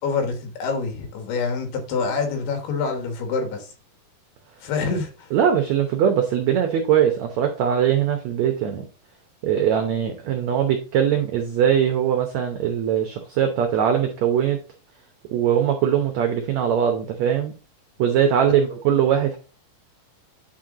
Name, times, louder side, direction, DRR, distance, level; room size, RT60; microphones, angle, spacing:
voice 1, 0.0-3.7 4.6-5.3, left 4 dB, 85° left, 3.5 m, -26 dB
voice 2, 5.3-8.9 9.4-14.6 15.3-17.5 18.0-19.4, right 9 dB, 80° right, 1.6 m, -21 dB
9.2 x 4.6 x 3.7 m
omnidirectional pair, 4.4 m